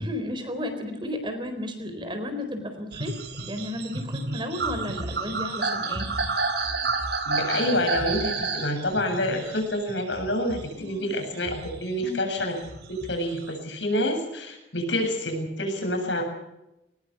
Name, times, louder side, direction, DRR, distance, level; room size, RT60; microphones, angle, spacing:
voice 1, 0.0-3.1 3.5-6.1 10.7-11.1 12.0-12.2, left 1 dB, 25° right, 7 dB, 4.0 m, -33 dB
sound 1, 2.9-10.9 11.3-13.6, right 3 dB, 65° right, 3.4 m, -30 dB
voice 2, 7.3-12.5 12.9-16.2, left 1 dB, 90° left, 3 dB, 7.7 m, -27 dB
22.0 x 20.0 x 7.1 m, 0.91 s
head